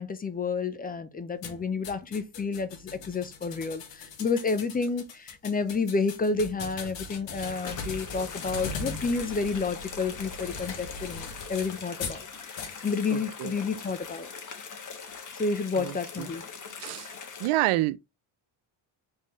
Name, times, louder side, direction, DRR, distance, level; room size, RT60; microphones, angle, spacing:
voice 1, 0.0-12.3 12.8-14.3 15.4-16.4, left 4 dB, 20° left, 0.4 m, -30 dB
sound 1, 1.4-12.2 12.6-13.0, left 4 dB, 60° left, 1.3 m, -40 dB
sound 2, 7.5-17.5, left 5 dB, 40° left, 1.1 m, -42 dB
voice 2, 13.1-13.5 15.8-16.3 16.8-17.1 17.4-18.0, right 17 dB, 80° right, 0.6 m, -28 dB
4.3 x 3.8 x 2.9 m
cardioid pair, 145°, 50 cm